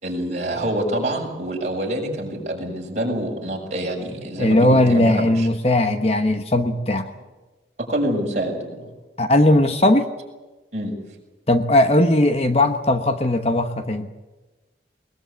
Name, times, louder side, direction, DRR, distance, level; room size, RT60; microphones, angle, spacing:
voice 1, 0.0-5.5 7.8-8.9 10.7-10.9, right 1 dB, 40° right, -1 dB, 6.3 m, -26 dB
voice 2, 4.4-7.1 9.2-10.1 11.5-14.1, left 1 dB, 35° left, 8 dB, 1.1 m, -18 dB
21.5 x 21.0 x 8.3 m, 1.2 s
head